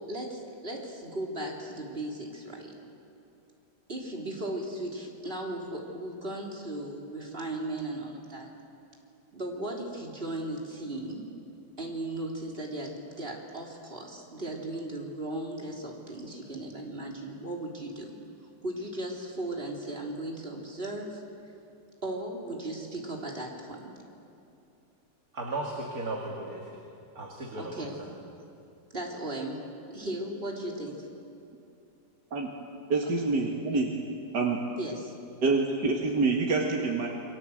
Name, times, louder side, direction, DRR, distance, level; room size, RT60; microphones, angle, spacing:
voice 1, 0.0-2.8 3.9-8.5 9.3-11.3 11.8-18.1 18.6-21.2 22.0-23.9 27.6-28.0 28.9-29.6 29.9-31.0 34.8-35.1, right 1 dB, 35° right, -1 dB, 3.8 m, -36 dB
voice 2, 25.3-26.6 27.2-28.1, right 2 dB, 60° right, -1 dB, 2.8 m, -35 dB
voice 3, 32.9-33.9 34.3-34.6 35.4-37.1, right 3 dB, 80° right, -1 dB, 2.5 m, -26 dB
29.0 x 22.5 x 7.9 m, 2.7 s
omnidirectional pair, 1.8 m